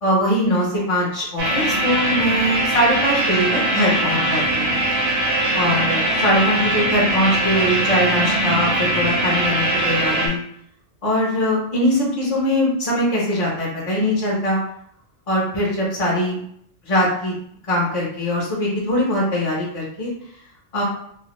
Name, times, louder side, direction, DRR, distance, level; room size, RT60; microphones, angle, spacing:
voice 1, 0.0-4.8 5.5-10.4 11.0-14.6 15.3-16.4 16.8-17.3 17.7-20.1 20.7-20.8, equal, 40° left, -5 dB, 0.5 m, -21 dB
sound 1, 1.4-10.3, right 1 dB, 75° right, 1.1 m, -21 dB
2.4 x 2.0 x 2.9 m, 0.69 s
omnidirectional pair, 1.3 m